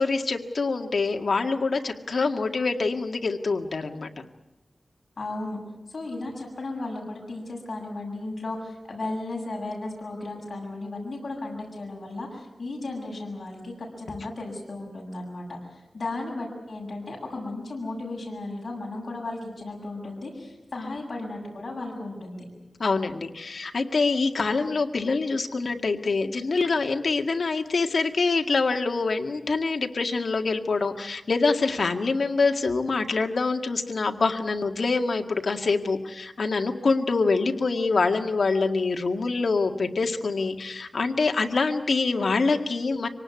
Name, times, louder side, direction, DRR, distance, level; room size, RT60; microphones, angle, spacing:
voice 1, 0.0-4.3 22.8-43.1, left 4 dB, 80° left, 4 dB, 1.9 m, -25 dB
voice 2, 5.2-5.6 5.9-22.4, left 2 dB, 60° left, -1 dB, 7.5 m, -35 dB
26.0 x 18.5 x 9.6 m, 1.0 s
wide cardioid pair, 90°, 0 cm